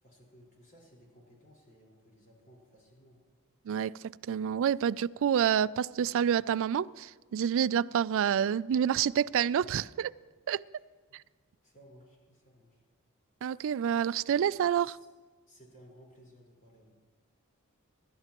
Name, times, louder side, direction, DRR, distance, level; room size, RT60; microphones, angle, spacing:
voice 1, 0.0-3.2 10.8-11.2 11.6-12.8 14.8-15.1 15.5-16.9, equal, 40° left, 4.5 m, -58 dB
voice 2, 3.7-10.1 10.5-10.6 11.1-11.2 13.4-15.0, right 8 dB, 65° right, 0.3 m, -28 dB
25.0 x 12.5 x 3.0 m
head